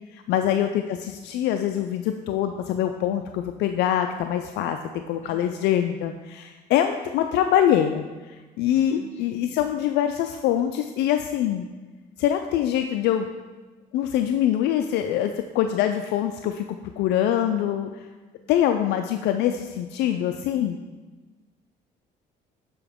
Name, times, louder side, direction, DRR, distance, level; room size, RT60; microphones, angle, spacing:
voice 1, 0.1-4.8 5.1-11.7 12.2-13.3 13.9-16.6 17.0-18.0 18.5-20.8, left 10 dB, 80° left, 6 dB, 0.4 m, -24 dB
voice 2, 8.9-9.6, left 3 dB, 40° left, -1 dB, 1.9 m, -47 dB
6.9 x 5.9 x 3.6 m, 1.3 s
cardioid pair, 110°, 17 cm